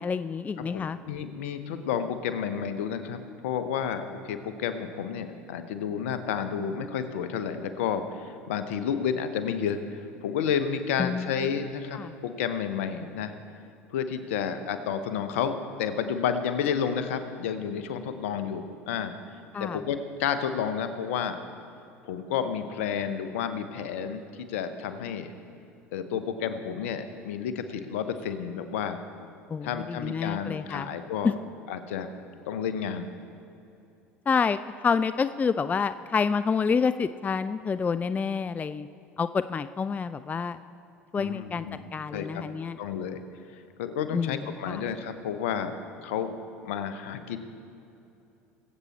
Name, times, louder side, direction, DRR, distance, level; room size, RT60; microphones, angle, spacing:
voice 1, 0.0-1.0 11.0-11.3 11.9-12.1 19.5-19.8 29.5-30.9 31.2-31.3 34.3-38.9 39.2-40.6 41.1-41.7 41.9-42.8 44.1-44.4 44.6-44.8, left 5 dB, 20° left, 13 dB, 0.4 m, -28 dB
voice 2, 0.6-13.4 13.9-19.1 19.6-21.4 22.0-25.3 25.9-29.0 29.6-31.3 31.7-32.1 32.5-33.1 41.2-42.4 42.8-43.2 43.5-45.7 46.0-46.3 46.6-47.4, left 7 dB, 75° left, 9 dB, 1.0 m, -31 dB
21.5 x 8.3 x 4.2 m, 2.8 s
hypercardioid pair, 75°, 7 cm